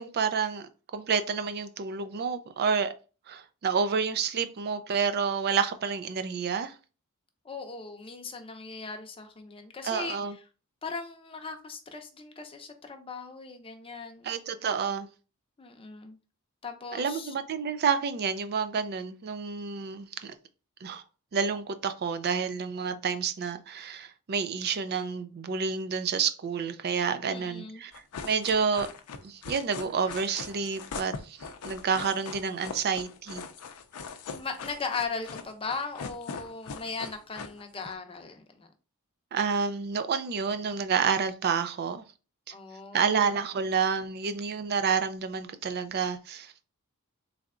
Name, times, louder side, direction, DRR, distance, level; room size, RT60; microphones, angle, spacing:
voice 1, 0.0-2.9 3.3-6.7 9.8-10.3 14.2-15.1 16.9-20.4 20.8-21.0 21.3-27.9 28.2-28.9 29.2-33.4 39.3-42.0 42.5-42.6 42.9-46.5, right 6 dB, 45° right, 0.4 m, -29 dB
voice 2, 7.4-10.2 10.8-14.3 15.6-16.2 16.6-17.3 27.3-27.8 34.3-38.7 42.5-43.3, left 4 dB, 25° left, 0.6 m, -38 dB
sound 1, 27.9-37.9, left 5 dB, 80° left, 0.5 m, -41 dB
3.8 x 3.3 x 2.4 m
head